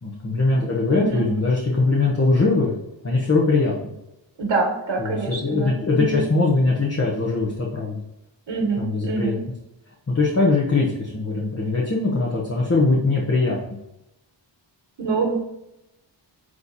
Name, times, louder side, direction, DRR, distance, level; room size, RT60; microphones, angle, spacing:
voice 1, 0.0-2.8 3.0-3.9 5.0-8.0 8.8-9.4 10.1-13.6, left 3 dB, 35° left, -4 dB, 1.2 m, -21 dB
voice 2, 0.9-1.3 4.4-6.2 8.5-9.4 15.0-15.4, right 3 dB, 85° right, 1 dB, 1.6 m, -25 dB
9.9 x 3.4 x 4.2 m, 0.88 s
wide cardioid pair, 155°, 45 cm